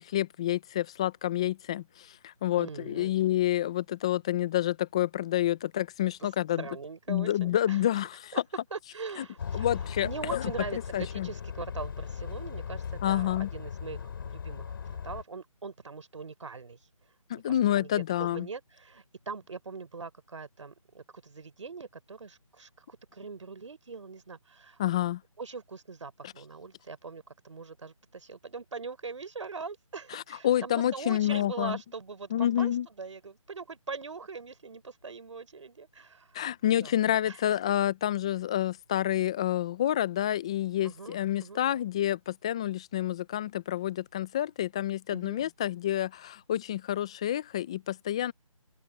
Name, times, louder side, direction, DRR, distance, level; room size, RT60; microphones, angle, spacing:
voice 1, 0.0-6.6 7.1-8.1 9.5-10.4 10.9-11.3 13.0-13.5 17.3-18.5 24.8-25.2 30.1-31.8 32.3-32.9 36.3-48.3, left 12 dB, 10° left, 0.5 m, -28 dB
voice 2, 2.6-3.1 6.2-6.3 6.6-8.0 8.3-8.4 8.7-16.9 17.5-24.8 25.4-32.7 33.0-36.4 36.8-37.0 37.3-37.4 40.8-41.6 45.1-45.5, right 4 dB, 60° right, 5.0 m, -42 dB
sound 1, 9.4-15.2, left 7 dB, 40° left, 5.1 m, -38 dB
open air
figure-of-eight pair, 165°, 18 cm